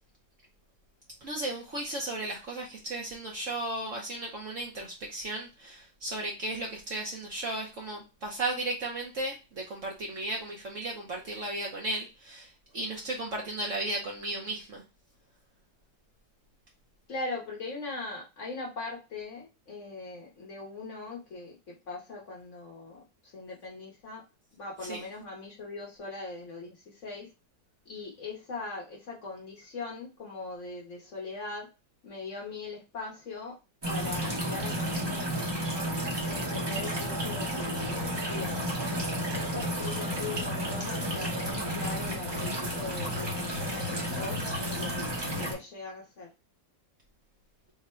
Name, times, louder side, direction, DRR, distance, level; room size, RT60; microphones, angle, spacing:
voice 1, 1.2-14.8 24.9-25.0, right 2 dB, 55° right, 0 dB, 0.9 m, -35 dB
voice 2, 17.1-24.2 24.5-27.3 27.9-31.7 32.0-33.6 33.9-35.9 36.3-38.6 39.3-45.1 45.4-46.3, left 3 dB, 50° left, -3 dB, 1.0 m, -40 dB
sound 1, 33.8-45.5, equal, 35° right, 0.4 m, -32 dB
3.7 x 2.1 x 4.2 m, 0.28 s
omnidirectional pair, 2.0 m